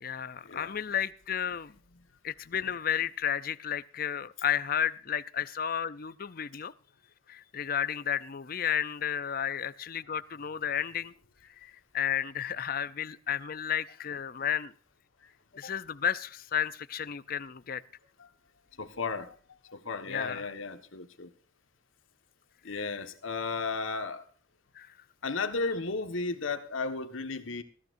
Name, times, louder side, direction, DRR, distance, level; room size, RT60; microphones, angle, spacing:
voice 1, 0.0-1.7 2.2-6.7 7.3-11.1 11.6-14.7 15.5-17.8 20.1-20.5 24.8-24.9, left 9 dB, 45° left, 15 dB, 0.6 m, -32 dB
voice 2, 18.8-19.3 19.7-21.3 22.6-24.2 25.2-27.6, left 4 dB, 85° left, 8 dB, 1.6 m, -34 dB
20.0 x 15.0 x 2.6 m, 0.42 s
head